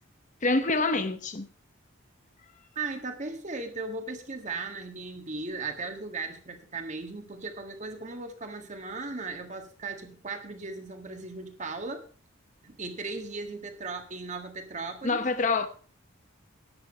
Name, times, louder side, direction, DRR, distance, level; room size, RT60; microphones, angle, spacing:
voice 1, 0.4-1.5 15.0-15.7, left 3 dB, 40° left, 0.8 m, -26 dB
voice 2, 2.8-12.1 12.6-15.3, right 3 dB, 35° right, 1.7 m, -37 dB
10.5 x 8.8 x 5.3 m
head